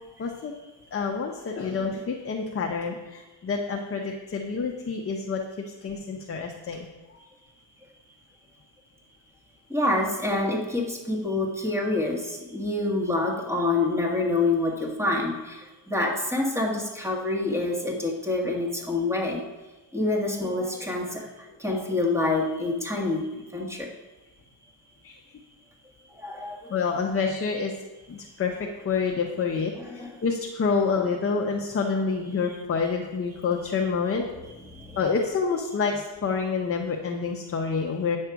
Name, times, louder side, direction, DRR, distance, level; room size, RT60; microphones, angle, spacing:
voice 1, 0.2-0.5 0.9-7.2 22.6-22.8 25.0-25.4 26.7-27.7 28.1-34.3 35.0-38.2, left 5 dB, 30° left, 1 dB, 0.7 m, -28 dB
voice 2, 9.7-19.4 19.9-23.3 23.5-23.9 26.2-26.7 29.8-30.1 34.7-35.0, left 2 dB, 5° right, 0 dB, 1.4 m, -27 dB
9.1 x 6.5 x 4.6 m, 1.1 s
cardioid pair, 140°, 46 cm